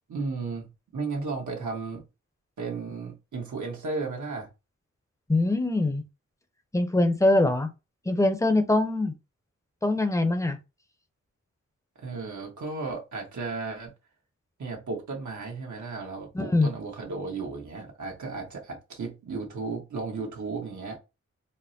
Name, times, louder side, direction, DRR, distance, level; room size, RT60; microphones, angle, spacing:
voice 1, 0.1-2.0 2.6-4.5 11.9-13.9 14.6-21.0, right 4 dB, 80° right, 1.2 m, -34 dB
voice 2, 5.3-6.0 6.7-7.7 8.1-9.1 9.8-10.6 16.3-16.7, left 2 dB, 10° left, 0.6 m, -23 dB
4.3 x 2.1 x 2.7 m
wide cardioid pair, 95°, 29 cm